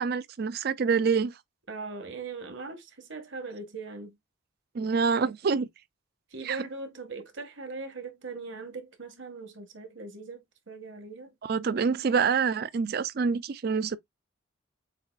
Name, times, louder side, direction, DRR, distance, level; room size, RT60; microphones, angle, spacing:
voice 1, 0.0-1.3 4.7-5.7 6.4-6.6 11.4-14.0, right 5 dB, 50° right, 0.4 m, -26 dB
voice 2, 1.7-4.1 6.3-11.3, right 3 dB, 65° right, 1.3 m, -40 dB
6.8 x 2.6 x 2.4 m
head